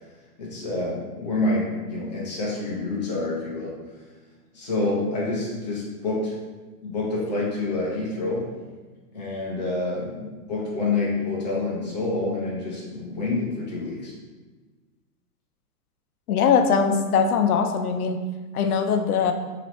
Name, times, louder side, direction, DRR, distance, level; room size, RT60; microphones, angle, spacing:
voice 1, 0.4-3.7 4.5-6.4 6.8-8.5 9.1-14.1, left 2 dB, 30° left, -5 dB, 0.6 m, -27 dB
voice 2, 16.3-18.2 18.5-19.3, left 6 dB, 70° left, 7 dB, 0.5 m, -21 dB
3.1 x 3.0 x 4.3 m, 1.3 s
hypercardioid pair, 180°, 47 cm